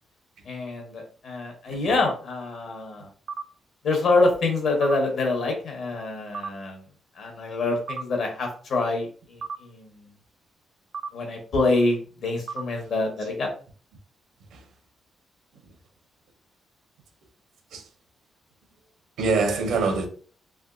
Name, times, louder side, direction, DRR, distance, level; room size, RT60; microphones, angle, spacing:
voice 1, 0.4-3.1 3.8-6.8 7.1-10.1 11.1-13.5, left 3 dB, 60° left, 1.0 m, -26 dB
sound 1, 3.3-3.5 4.8-5.0 6.3-6.5 7.9-8.1 9.4-9.6 10.9-11.1 12.5-12.7, right 5 dB, 45° right, 0.3 m, -33 dB
voice 2, 19.2-20.1, right 4 dB, 80° right, 0.8 m, -25 dB
3.4 x 3.0 x 2.4 m
wide cardioid pair, 160°, 0 cm